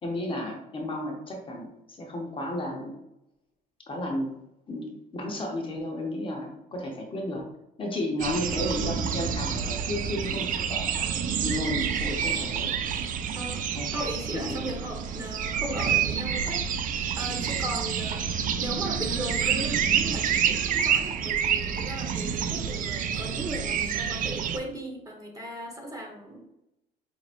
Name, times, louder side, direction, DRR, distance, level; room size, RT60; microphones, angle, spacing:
voice 1, 0.0-2.9 3.9-4.4 4.7-7.5 7.8-11.1 11.4-12.7 13.7-14.1 14.3-14.6, left 1 dB, 30° left, 0 dB, 0.8 m, -33 dB
sound 1, 8.2-24.6, right 8 dB, 55° right, 0.4 m, -28 dB
voice 2, 13.9-26.5, right 1 dB, 20° right, 1 dB, 1.0 m, -37 dB
5.2 x 2.9 x 2.5 m, 0.88 s
cardioid pair, 110°, 17 cm